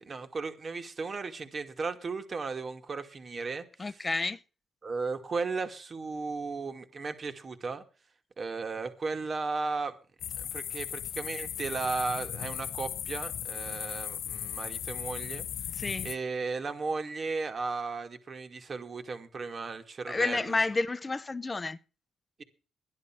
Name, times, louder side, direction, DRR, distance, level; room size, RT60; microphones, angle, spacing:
voice 1, 0.0-3.7 4.8-7.8 8.4-9.9 10.4-15.4 16.0-20.6, right 4 dB, 40° right, 2.2 m, -35 dB
voice 2, 3.8-4.4 15.7-16.1 20.1-21.8, left 3 dB, 25° left, 1.1 m, -30 dB
sound 1, 10.2-16.2, left 10 dB, 75° left, 0.9 m, -37 dB
12.5 x 10.5 x 6.1 m
cardioid pair, 90°, 0 cm